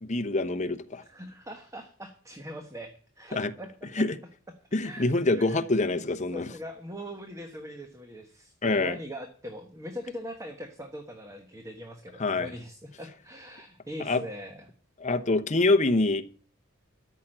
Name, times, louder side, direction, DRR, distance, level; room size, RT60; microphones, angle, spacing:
voice 1, 0.0-1.0 3.3-3.5 3.9-4.2 4.7-6.5 8.6-9.0 12.2-12.5 14.1-14.2 15.0-16.2, left 2 dB, 35° left, 0.9 m, -25 dB
voice 2, 0.9-4.1 4.8-5.7 6.3-14.7, equal, 15° right, 1.2 m, -41 dB
13.5 x 6.0 x 8.9 m
head